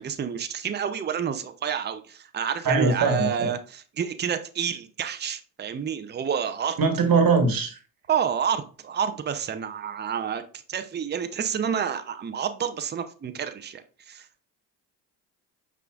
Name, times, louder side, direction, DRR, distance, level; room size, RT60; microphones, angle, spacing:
voice 1, 0.0-6.8 8.1-10.4 10.7-14.4, right 8 dB, 20° right, 9 dB, 0.5 m, -29 dB
voice 2, 2.6-3.5 6.8-7.8, right 4 dB, 45° right, 6 dB, 1.4 m, -21 dB
5.5 x 3.8 x 2.4 m, 0.38 s
hypercardioid pair, 60°, 50 cm